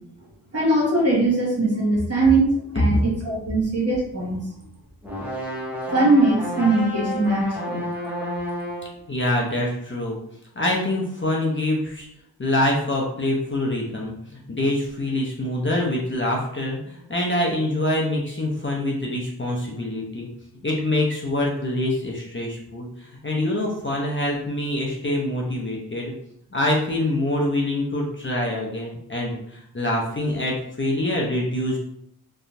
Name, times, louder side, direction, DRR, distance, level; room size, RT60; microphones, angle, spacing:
voice 1, 0.5-4.4 5.9-8.1, right 2 dB, 40° right, -4 dB, 1.4 m, -21 dB
sound 1, 5.0-9.0, equal, 5° right, 0.8 m, -30 dB
voice 2, 9.1-10.2 10.6-12.1 12.4-20.3 20.6-26.1 26.5-31.8, left 1 dB, 30° left, -3 dB, 0.7 m, -25 dB
2.8 x 2.3 x 2.6 m, 0.73 s
cardioid pair, 45°, 39 cm